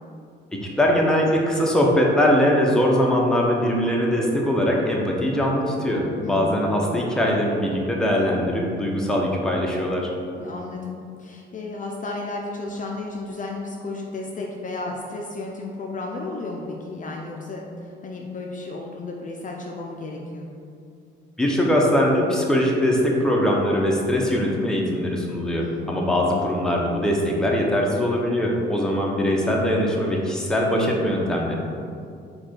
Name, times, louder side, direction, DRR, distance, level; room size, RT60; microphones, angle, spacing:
voice 1, 0.8-10.1 21.4-31.5, equal, 5° left, -2 dB, 0.7 m, -21 dB
voice 2, 6.2-6.6 10.4-20.5 25.6-26.0, left 3 dB, 40° left, 0 dB, 0.5 m, -33 dB
4.7 x 2.4 x 4.4 m, 2.4 s
cardioid pair, 90°, 20 cm